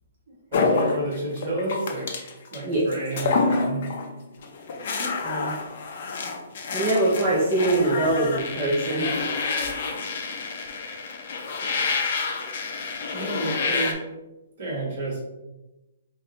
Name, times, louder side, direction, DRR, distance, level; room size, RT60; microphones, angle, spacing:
sound 1, 0.5-2.6 2.9-4.1 4.4-13.9, left 4 dB, 45° left, 0.5 m, -28 dB
voice 1, 0.5-2.1 2.5-3.9 13.1-14.0 14.6-15.2, right 1 dB, 40° right, -5 dB, 1.5 m, -30 dB
voice 2, 5.0-5.5 6.7-9.1, right 2 dB, 10° right, -8 dB, 0.5 m, -23 dB
3.6 x 2.6 x 3.9 m, 1.0 s
hypercardioid pair, 175°, 0 cm